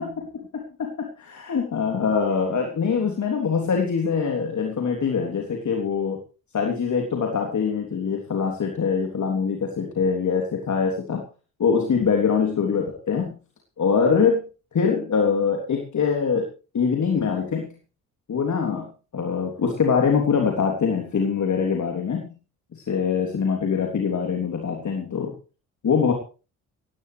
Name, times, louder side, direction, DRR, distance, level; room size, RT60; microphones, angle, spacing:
voice 1, 0.0-6.2 6.5-11.2 11.6-13.4 13.8-14.4 14.7-16.5 16.7-17.7 18.3-22.3 22.7-25.3 25.8-26.1, left 6 dB, 40° left, 2 dB, 3.3 m, -23 dB
18.0 x 17.5 x 3.4 m, 0.35 s
figure-of-eight pair, 45°, 42 cm